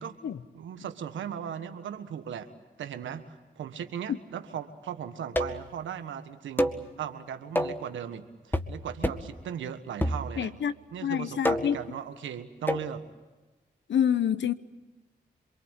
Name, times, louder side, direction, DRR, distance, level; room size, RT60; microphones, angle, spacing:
voice 1, 0.5-2.5 2.8-10.5 10.9-13.1, right 8 dB, 90° right, 1.5 m, -38 dB
sound 1, 5.4-5.7 6.6-6.9 7.6-7.9 8.5-8.8 9.0-9.3 10.0-10.6 11.4-11.9 12.7-12.9, equal, 10° left, 1.8 m, -28 dB
voice 2, 10.4-10.7 11.0-11.8 13.9-14.5, left 9 dB, 75° left, 1.0 m, -27 dB
26.5 x 23.0 x 8.2 m
supercardioid pair, 45°, 19 cm